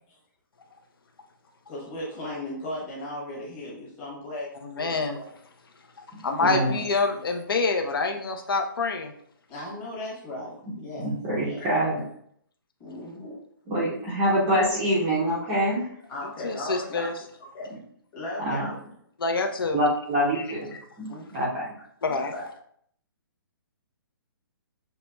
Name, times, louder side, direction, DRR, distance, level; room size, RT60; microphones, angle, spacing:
voice 1, 1.7-5.3 6.4-6.8 7.1-7.2 9.5-11.1 11.4-11.7 12.8-13.4 16.1-17.1 17.5-17.7 18.1-18.8 21.1-21.4 22.1-22.4, left 1 dB, 15° left, -7 dB, 1.0 m, -37 dB
voice 2, 4.6-5.2 6.2-9.1 16.4-17.1 19.2-19.8 22.0-22.3, left 4 dB, 75° left, 4 dB, 0.7 m, -26 dB
voice 3, 10.6-12.0 13.7-15.9 18.4-18.7 19.7-21.7, equal, 10° right, -6 dB, 0.5 m, -25 dB
6.6 x 3.0 x 2.2 m, 0.67 s
hypercardioid pair, 175°, 12 cm